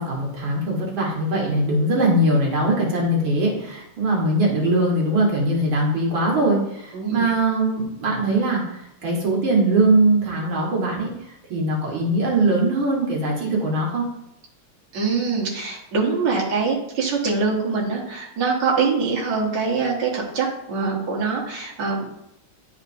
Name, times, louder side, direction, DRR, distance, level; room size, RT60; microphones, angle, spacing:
voice 1, 0.0-11.1 11.5-14.1, right 2 dB, 80° right, -3 dB, 2.3 m, -21 dB
voice 2, 6.9-7.3 14.9-22.0, right 4 dB, 60° right, -4 dB, 1.9 m, -24 dB
11.0 x 4.4 x 2.6 m, 0.79 s
omnidirectional pair, 2.2 m